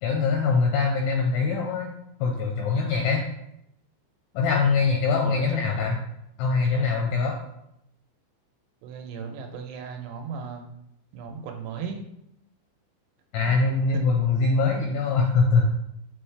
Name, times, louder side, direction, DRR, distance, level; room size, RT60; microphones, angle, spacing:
voice 1, 0.0-1.9 2.2-3.2 4.3-6.0 6.4-7.3 13.3-15.7, left 4 dB, 80° left, 0 dB, 2.6 m, -23 dB
voice 2, 5.1-5.4 5.7-5.9 8.8-10.6 11.1-12.0 13.5-13.6 13.9-14.0, right 6 dB, 80° right, 4 dB, 2.7 m, -36 dB
6.1 x 5.4 x 3.3 m, 0.79 s
omnidirectional pair, 5.2 m